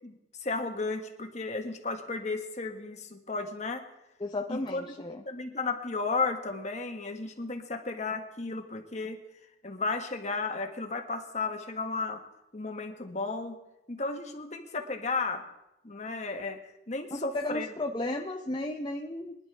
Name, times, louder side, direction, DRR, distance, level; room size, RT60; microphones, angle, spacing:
voice 1, 0.0-3.8 4.5-4.9 5.2-9.2 9.6-12.2 12.5-13.6 13.9-15.4 15.8-16.6 16.9-17.7, left 3 dB, 40° left, 4 dB, 1.5 m, -34 dB
voice 2, 4.2-5.2 17.1-19.4, left 2 dB, 25° left, 1 dB, 0.7 m, -34 dB
23.0 x 11.0 x 3.4 m, 0.89 s
head